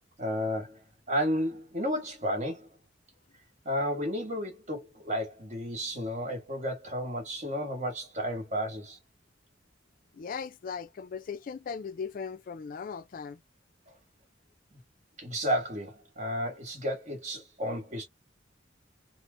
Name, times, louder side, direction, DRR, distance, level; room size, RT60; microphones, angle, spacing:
voice 1, 0.2-0.8 1.1-2.7 3.6-9.0 15.2-18.1, equal, 40° right, 1.3 m, -32 dB
voice 2, 10.1-13.4, left 6 dB, 50° left, 0.4 m, -38 dB
4.2 x 2.1 x 2.5 m
head